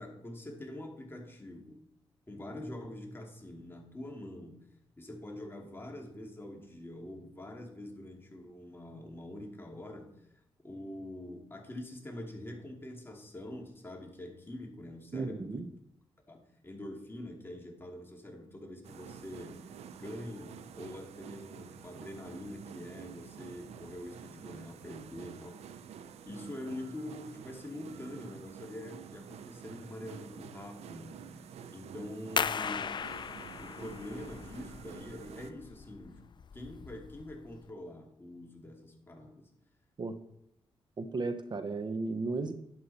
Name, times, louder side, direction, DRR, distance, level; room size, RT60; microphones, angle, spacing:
voice 1, 0.0-1.8 2.3-4.7 5.0-10.2 10.6-15.6 16.3-25.6 26.2-31.4 31.7-33.0 33.6-36.3 36.5-39.5, left 1 dB, 20° left, 1 dB, 2.7 m, -45 dB
voice 2, 15.1-15.7 40.0-40.2 41.0-42.5, right 3 dB, 45° right, 9 dB, 1.0 m, -34 dB
sound 1, 18.8-35.5, right 8 dB, 85° right, 0.6 m, -49 dB
sound 2, 32.4-37.7, left 7 dB, 50° left, 0.4 m, -38 dB
11.5 x 8.3 x 4.3 m, 0.78 s
cardioid pair, 65°, 10 cm